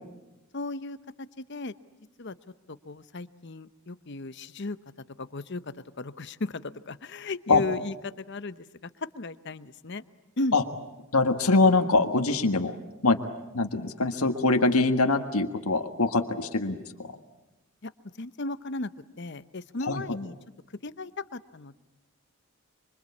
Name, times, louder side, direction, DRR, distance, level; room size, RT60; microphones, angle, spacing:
voice 1, 0.5-1.7 2.2-2.3 2.8-4.8 5.2-5.6 6.0-8.9 9.1-10.0 10.4-10.5 17.8-17.9 18.2-18.9 19.2-20.4 20.8-21.8, left 2 dB, 55° left, 13 dB, 0.9 m, -35 dB
voice 2, 11.1-12.7 13.0-13.2 13.5-17.2 19.9-20.0, left 3 dB, 85° left, 5 dB, 1.6 m, -23 dB
25.5 x 25.0 x 8.6 m, 0.99 s
head